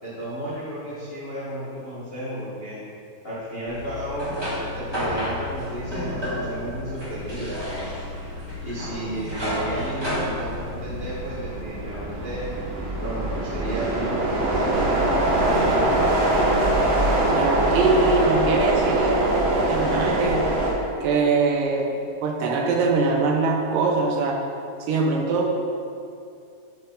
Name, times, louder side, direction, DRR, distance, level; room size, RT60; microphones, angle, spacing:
voice 1, 0.0-2.8 3.2-4.5 4.7-7.9 8.6-12.5 13.0-15.9, right 1 dB, 75° left, -10 dB, 0.5 m, -33 dB
sound 1, 3.7-11.4, left 1 dB, 30° right, 0.4 m, -31 dB
sound 2, 5.7-5.9 6.3-20.7, right 1 dB, 60° right, 2.2 m, -24 dB
voice 2, 17.3-20.4 21.0-21.9 22.2-24.4 24.9-25.5, right 3 dB, 80° right, -1 dB, 2.5 m, -22 dB
11.5 x 4.5 x 3.9 m, 2.5 s
omnidirectional pair, 3.8 m